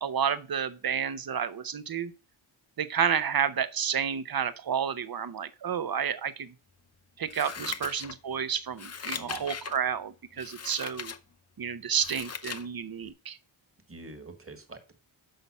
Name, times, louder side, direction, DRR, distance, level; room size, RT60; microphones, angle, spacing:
voice 1, 0.0-2.1 2.8-6.5 7.2-11.1 11.6-13.4, right 7 dB, 45° right, 0.8 m, -30 dB
Scissors, 7.3-8.4 8.7-9.8 10.4-11.2 11.6-12.7 13.1-13.2, left 6 dB, 30° left, 0.6 m, -39 dB
voice 2, 7.4-7.7 9.1-9.4 13.9-14.9, right 2 dB, 25° right, 1.6 m, -46 dB
7.8 x 5.6 x 5.3 m
wide cardioid pair, 175°, 48 cm